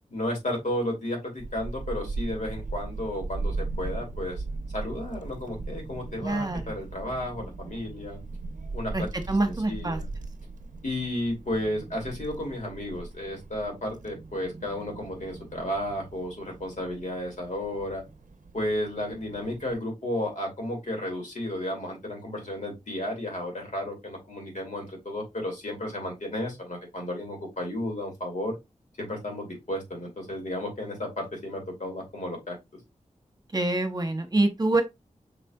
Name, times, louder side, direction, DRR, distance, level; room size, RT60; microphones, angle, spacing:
voice 1, 0.1-4.4 4.7-8.2 8.7-9.1 9.7-10.1 10.8-18.0 18.5-28.6 29.0-32.6, left 1 dB, 70° left, 2.3 m, -33 dB
Child speech kid speaking / Wind, 1.4-19.7, right 3 dB, 75° right, 0.6 m, -38 dB
voice 2, 6.2-6.6 8.9-10.0 33.5-34.8, right 2 dB, 30° right, 1.0 m, -25 dB
5.2 x 4.1 x 2.3 m
wide cardioid pair, 65°, 13 cm